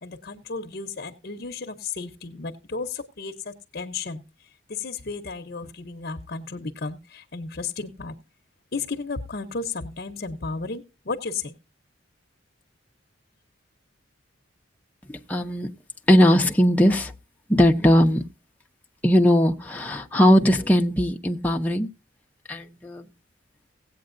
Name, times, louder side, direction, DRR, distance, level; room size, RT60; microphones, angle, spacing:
voice 1, 0.0-8.1 8.7-11.5, left 4 dB, 50° left, 0.7 m, -33 dB
voice 2, 15.1-15.7 16.1-17.1 17.5-18.2 19.0-21.9 22.5-23.1, equal, 10° left, 0.6 m, -19 dB
17.0 x 8.5 x 2.5 m
head